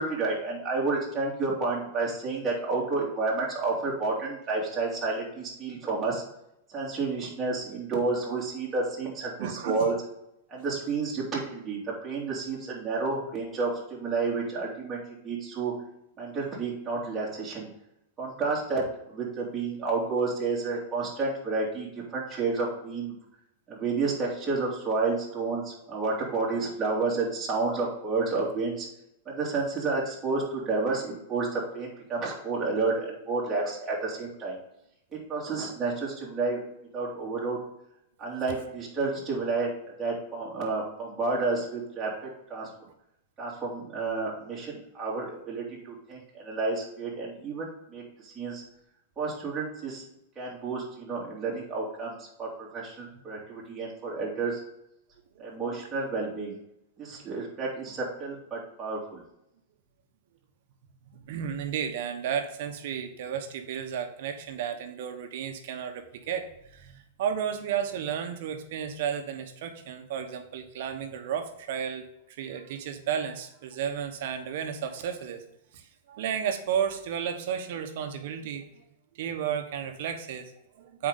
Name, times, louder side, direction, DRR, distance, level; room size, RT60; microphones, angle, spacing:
voice 1, 0.0-6.2 6.7-9.9 10.5-15.7 16.2-17.7 18.2-23.2 23.7-28.9 29.2-34.6 35.1-36.6 36.9-37.6 38.2-42.7 43.4-48.6 49.2-50.0 50.4-54.6 55.4-56.6 57.0-59.2, right 3 dB, 20° right, -5 dB, 2.7 m, -30 dB
voice 2, 9.4-9.9 55.4-55.6 61.1-75.4 75.7-78.8 79.1-81.1, right 8 dB, 65° right, 6 dB, 1.2 m, -33 dB
7.8 x 4.9 x 4.0 m, 0.80 s
supercardioid pair, 135°, 0 cm